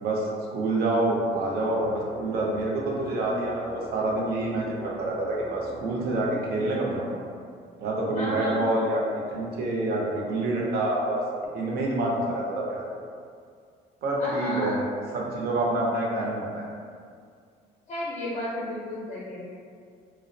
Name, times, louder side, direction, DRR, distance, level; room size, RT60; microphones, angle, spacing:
voice 1, 0.0-7.1 7.8-9.0 9.3-11.2 11.5-13.0 14.0-14.8 15.1-16.7, right 2 dB, 65° right, -3 dB, 0.6 m, -27 dB
sound 1, 1.0-8.7, equal, 15° right, 0.4 m, -44 dB
voice 2, 8.2-8.8 14.2-14.8 17.9-19.5, left 1 dB, 40° left, -6 dB, 0.5 m, -33 dB
2.4 x 2.1 x 2.6 m, 2.2 s
cardioid pair, 110°, 17 cm